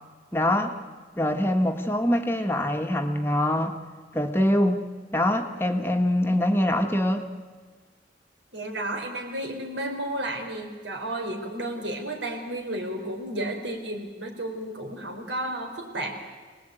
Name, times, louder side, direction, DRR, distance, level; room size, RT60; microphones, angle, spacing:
voice 1, 0.3-0.8 1.2-3.8 4.1-4.9 5.1-7.3, left 1 dB, 15° left, 4 dB, 1.5 m, -24 dB
voice 2, 8.5-16.2, right 1 dB, 85° right, 2 dB, 4.5 m, -32 dB
27.0 x 19.5 x 9.2 m, 1.5 s
head